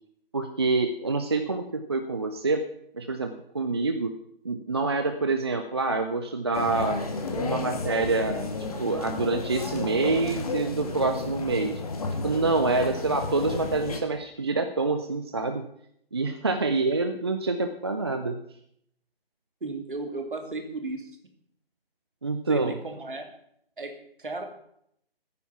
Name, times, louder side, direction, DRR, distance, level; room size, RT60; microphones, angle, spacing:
voice 1, 0.3-2.6 2.9-4.1 4.4-7.0 7.3-8.5 8.8-11.8 12.2-15.7 16.1-18.4 22.2-22.7, right 3 dB, 25° right, 8 dB, 0.6 m, -26 dB
sound 1, 6.5-14.0, left 3 dB, 40° left, 1.9 m, -32 dB
voice 2, 19.6-21.2 22.5-23.3 23.8-24.4, right 3 dB, 55° right, 5 dB, 2.7 m, -35 dB
14.5 x 9.5 x 5.7 m, 0.72 s
figure-of-eight pair, 145°, 30 cm